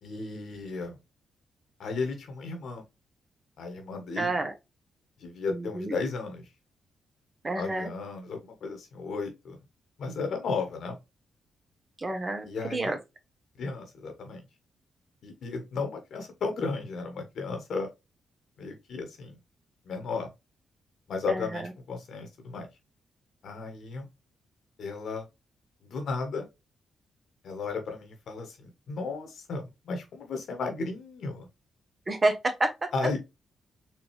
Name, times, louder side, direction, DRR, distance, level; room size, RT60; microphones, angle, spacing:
voice 1, 0.0-0.9 1.8-2.8 3.6-4.3 5.2-6.4 7.6-9.6 10.0-11.0 12.4-13.0 13.6-14.4 15.2-17.9 18.6-19.4 19.8-20.3 21.1-22.7 23.4-24.1 24.8-25.3 25.8-26.5 27.4-31.5 32.9-33.2, left 4 dB, 70° left, 1.3 m, -34 dB
voice 2, 4.2-4.5 5.5-6.0 7.4-7.9 12.0-13.0 21.3-21.7 32.1-32.9, right 2 dB, 35° right, 1.1 m, -29 dB
4.4 x 2.8 x 3.1 m
hypercardioid pair, 45°, 0 cm